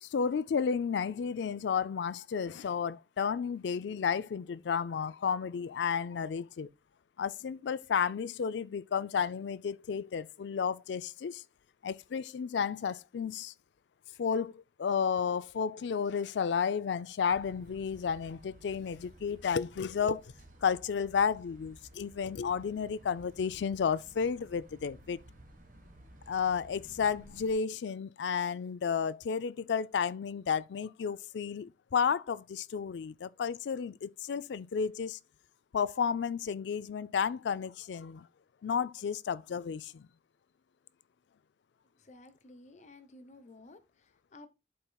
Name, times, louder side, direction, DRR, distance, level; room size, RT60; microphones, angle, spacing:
voice 1, 0.0-6.7 7.2-11.4 11.8-13.5 14.2-20.3 20.6-25.2 26.3-35.2 35.7-38.3 38.6-40.1, left 6 dB, 85° left, 0.4 m, -32 dB
sound 1, 17.3-27.5, right 1 dB, 50° right, 1.2 m, -56 dB
voice 2, 42.0-44.5, left 2 dB, 40° left, 0.9 m, -54 dB
11.0 x 4.4 x 2.3 m
head